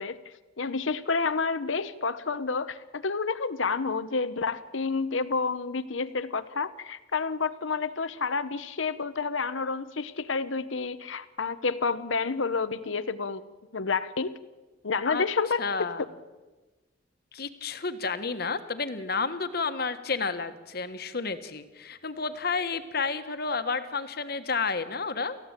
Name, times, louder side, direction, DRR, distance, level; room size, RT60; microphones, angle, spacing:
voice 1, 0.0-13.4 13.7-14.3 14.8-15.6, left 4 dB, 80° left, 14 dB, 0.9 m, -29 dB
voice 2, 15.6-16.0 17.3-25.4, left 4 dB, 55° left, 10 dB, 1.5 m, -31 dB
29.0 x 15.0 x 9.0 m, 1.2 s
head